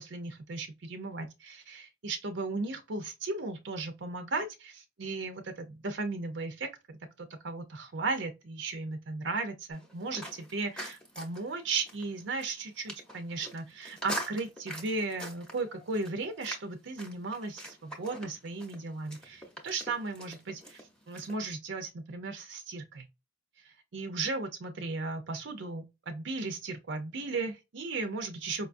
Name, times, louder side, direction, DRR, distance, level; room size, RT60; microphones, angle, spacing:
voice 1, 0.0-6.7 7.2-23.1 23.6-28.7, right 3 dB, 60° right, 0.5 m, -36 dB
sound 1, 9.7-21.3, equal, 5° left, 0.8 m, -44 dB
4.9 x 2.3 x 2.5 m
head